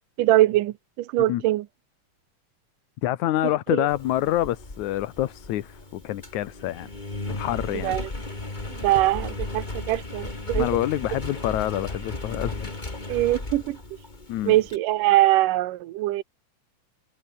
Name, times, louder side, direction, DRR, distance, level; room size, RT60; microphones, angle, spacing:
voice 1, 0.2-1.7 3.4-3.9 7.8-8.1 8.7-10.7 13.1-13.8 14.4-16.2, right 16 dB, 80° right, 2.5 m, -22 dB
voice 2, 3.0-6.9 7.3-7.9 10.5-12.7 14.3-14.6, left 14 dB, 70° left, 2.3 m, -27 dB
Engine, 3.9-14.8, left 2 dB, 15° left, 2.5 m, -35 dB
omnidirectional pair, 3.8 m